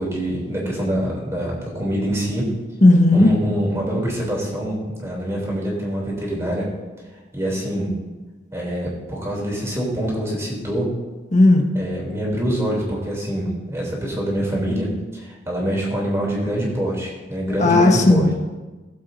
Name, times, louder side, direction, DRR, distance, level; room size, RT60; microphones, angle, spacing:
voice 1, 0.0-2.4 3.1-6.7 7.3-7.9 8.5-10.9 11.7-14.9 15.1-18.3, equal, 15° right, -4 dB, 3.0 m, -25 dB
voice 2, 2.8-3.3 11.3-11.6 17.6-18.3, left 2 dB, 40° left, 2 dB, 1.4 m, -13 dB
18.5 x 7.5 x 2.7 m, 1.2 s
head